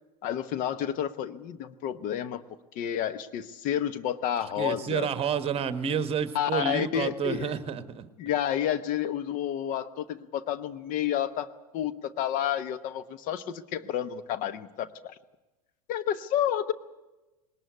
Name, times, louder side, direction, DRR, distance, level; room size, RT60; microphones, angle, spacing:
voice 1, 0.2-2.4 2.7-5.1 6.3-7.5 8.2-11.5 11.7-15.2 15.9-16.7, left 10 dB, 40° left, 12 dB, 1.0 m, -30 dB
voice 2, 4.6-8.1, right 7 dB, 30° right, 12 dB, 1.4 m, -29 dB
20.5 x 18.5 x 8.2 m, 1.1 s
hypercardioid pair, 90°, 20 cm